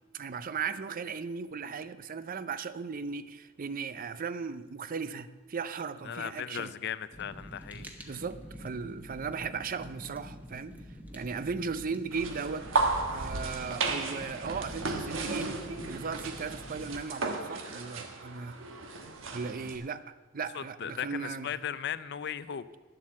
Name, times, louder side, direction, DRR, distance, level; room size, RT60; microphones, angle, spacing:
voice 1, 0.1-6.7 8.1-10.8 11.1-12.7 13.1-15.6 15.9-18.6 19.3-20.0 20.3-21.5, right 5 dB, 45° right, 0.5 m, -37 dB
voice 2, 6.0-8.1 20.5-22.6, left 8 dB, 55° left, 0.5 m, -37 dB
Fire, 7.1-17.0, equal, 10° right, 1.1 m, -47 dB
sound 1, 12.1-19.8, right 3 dB, 70° right, 1.3 m, -34 dB
10.5 x 7.7 x 7.4 m
head